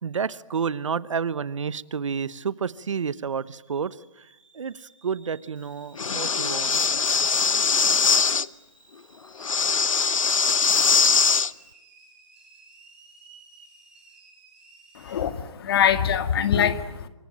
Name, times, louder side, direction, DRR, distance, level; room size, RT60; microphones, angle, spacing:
voice 1, 0.0-4.3 4.5-6.8, right 6 dB, 70° right, 17 dB, 1.1 m, -30 dB
sound 1, 2.4-15.2, right 3 dB, 5° right, 6.1 m, -55 dB
Breathing, 6.0-8.5 9.4-11.5, left 5 dB, 85° left, 1.0 m, -21 dB
voice 2, 14.9-17.1, left 8 dB, 50° left, 9 dB, 2.2 m, -23 dB
27.0 x 24.0 x 9.0 m, 0.93 s
hypercardioid pair, 145°, 17 cm